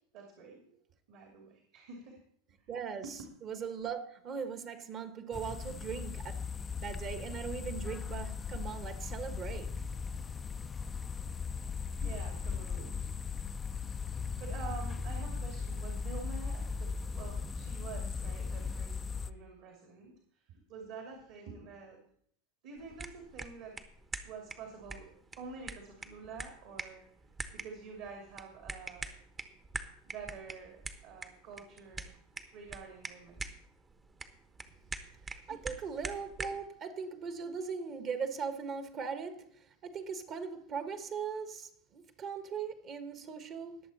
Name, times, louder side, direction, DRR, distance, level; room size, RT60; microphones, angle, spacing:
voice 1, 0.1-0.8 1.1-2.2 2.6-2.7 3.0-3.1 12.0-13.1 14.4-22.0 22.6-23.8 24.2-25.1 25.4-27.1 27.5-29.2 30.1-32.2 32.5-33.5 35.5-35.6, right 5 dB, 55° right, 2.7 m, -48 dB
voice 2, 2.7-3.0 3.4-6.4 6.8-9.7 35.3-43.8, right 6 dB, 40° right, 1.5 m, -39 dB
sound 1, 5.3-19.3, left 5 dB, 20° left, 0.5 m, -38 dB
sound 2, 22.8-36.7, right 3 dB, 20° right, 1.1 m, -45 dB
20.0 x 7.1 x 4.2 m
hypercardioid pair, 90°, 0 cm